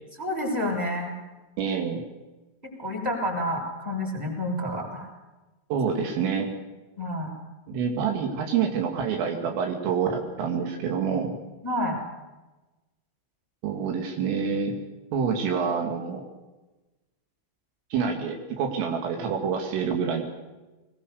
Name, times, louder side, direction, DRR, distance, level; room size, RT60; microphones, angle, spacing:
voice 1, 0.2-1.1 2.6-5.1 7.0-7.3 11.6-12.0, left 1 dB, 10° right, 0 dB, 6.2 m, -29 dB
voice 2, 1.6-2.0 5.7-6.5 7.7-11.3 13.6-14.8 15.1-16.2 17.9-20.2, right 6 dB, 80° right, 3 dB, 5.1 m, -27 dB
22.0 x 20.5 x 6.8 m, 1.1 s
omnidirectional pair, 5.7 m